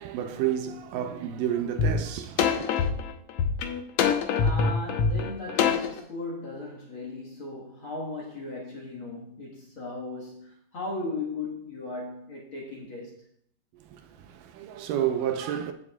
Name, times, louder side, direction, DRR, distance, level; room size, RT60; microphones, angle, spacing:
voice 1, 0.0-2.7 13.9-15.7, right 10 dB, 80° right, 2.2 m, -30 dB
sound 1, 1.8-1.9 2.4-6.0, left 6 dB, 85° left, 1.4 m, -24 dB
voice 2, 4.4-13.2, left 2 dB, 50° left, 1.7 m, -37 dB
14.5 x 7.4 x 2.3 m
omnidirectional pair, 3.9 m